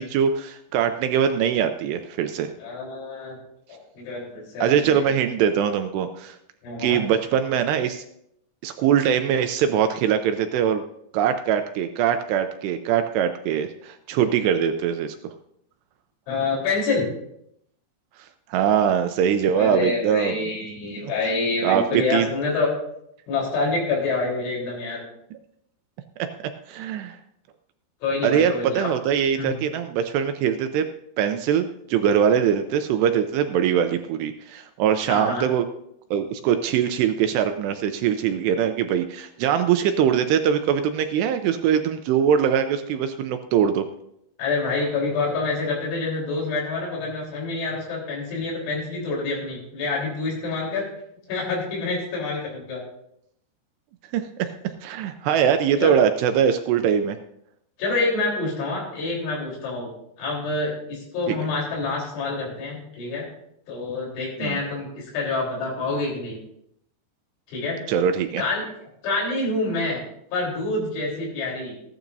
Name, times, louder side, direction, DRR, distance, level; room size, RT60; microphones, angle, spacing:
voice 1, 0.0-2.5 4.6-6.4 6.8-8.0 8.6-10.8 11.1-15.2 18.5-20.4 21.6-22.3 26.7-27.2 28.2-30.9 31.2-35.7 36.1-43.9 54.1-54.5 54.8-57.2 61.3-61.4 64.4-64.6 67.9-68.4, right 8 dB, 80° right, 8 dB, 2.5 m, -22 dB
voice 2, 2.6-3.4 3.7-5.1 6.6-7.0 16.3-17.1 19.6-22.7 23.3-25.0 28.0-28.9 29.4-29.6 35.1-35.5 44.4-50.9 51.3-52.8 55.8-55.9 57.8-59.9 60.2-63.2 63.7-66.4 67.5-67.8 68.4-68.6 69.0-70.0 70.3-71.7, left 3 dB, 85° left, -3 dB, 6.2 m, -27 dB
16.0 x 12.0 x 2.7 m, 0.76 s
omnidirectional pair, 5.3 m